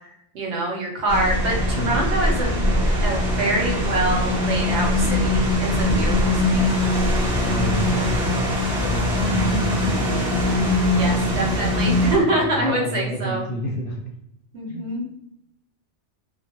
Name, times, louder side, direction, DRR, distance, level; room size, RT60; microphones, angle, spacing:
voice 1, 0.3-2.5 3.0-6.7 10.9-13.4 14.5-15.0, right 2 dB, 75° right, -1 dB, 1.0 m, -25 dB
sound 1, 1.1-12.2, left 1 dB, 35° right, 0.8 m, -21 dB
voice 2, 1.7-2.1 5.9-6.2 7.4-8.2 8.7-10.2 12.3-14.0 14.7-14.9, right 1 dB, 60° left, 0 dB, 0.7 m, -29 dB
2.3 x 2.0 x 2.8 m, 0.77 s
omnidirectional pair, 1.2 m